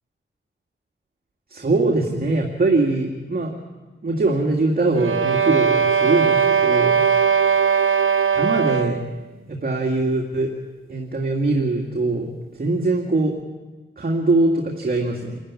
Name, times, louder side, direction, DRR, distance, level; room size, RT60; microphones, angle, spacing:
voice 1, 1.5-3.5 4.0-7.0 8.4-9.0 9.5-10.5 10.9-12.3 12.6-13.3 14.0-15.4, right 2 dB, 45° right, 0 dB, 2.6 m, -22 dB
sound 1, 5.0-9.1, right 6 dB, 90° right, 1.1 m, -19 dB
27.5 x 15.0 x 9.9 m, 1.2 s
wide cardioid pair, 120°, 21 cm